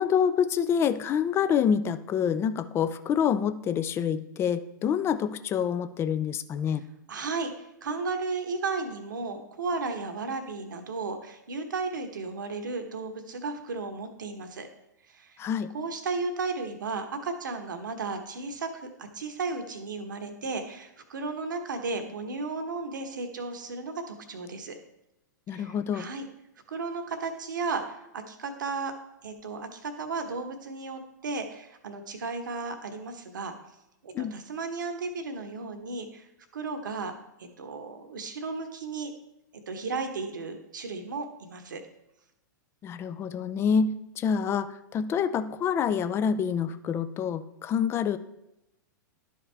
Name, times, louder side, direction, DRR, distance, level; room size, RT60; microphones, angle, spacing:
voice 1, 0.0-6.8 15.4-15.7 25.5-26.1 34.1-34.3 42.8-48.2, left 7 dB, 25° left, 12 dB, 0.4 m, -27 dB
voice 2, 7.1-14.7 15.1-15.4 15.7-24.8 25.5-26.3 26.7-28.9 29.2-33.5 34.0-36.3 36.5-37.1 37.4-39.1 39.7-41.8, right 4 dB, 75° right, 6 dB, 1.2 m, -34 dB
11.5 x 4.9 x 3.4 m, 0.89 s
figure-of-eight pair, 105°, 11 cm